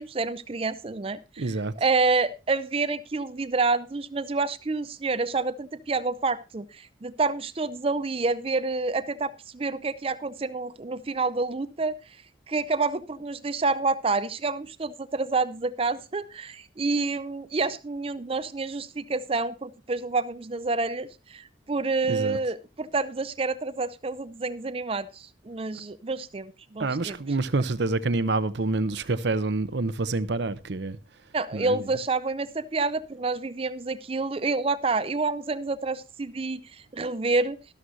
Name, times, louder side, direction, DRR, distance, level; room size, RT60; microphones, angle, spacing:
voice 1, 0.0-11.9 12.5-27.2 31.3-37.6, right 3 dB, 30° right, 0.5 m, -28 dB
voice 2, 1.4-1.7 22.1-22.4 26.8-31.0 31.5-32.0, right 3 dB, 65° right, 0.7 m, -27 dB
13.0 x 12.5 x 2.7 m
head